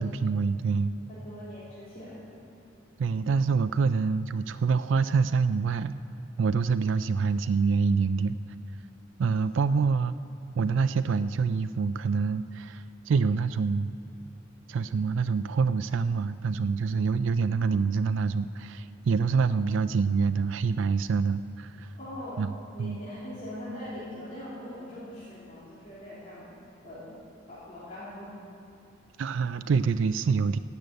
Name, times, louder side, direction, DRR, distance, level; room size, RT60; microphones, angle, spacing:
voice 1, 0.0-0.9 3.0-5.9 6.4-8.4 9.2-10.2 10.6-13.9 14.7-21.9 22.4-22.5 22.8-23.0 29.2-30.6, right 5 dB, 70° right, 12 dB, 0.4 m, -26 dB
voice 2, 1.1-2.3 9.6-9.7 22.0-22.5 22.7-26.5 26.8-27.1 27.5-28.4, left 1 dB, 35° left, -11 dB, 3.2 m, -41 dB
15.5 x 6.9 x 8.9 m, 2.8 s
head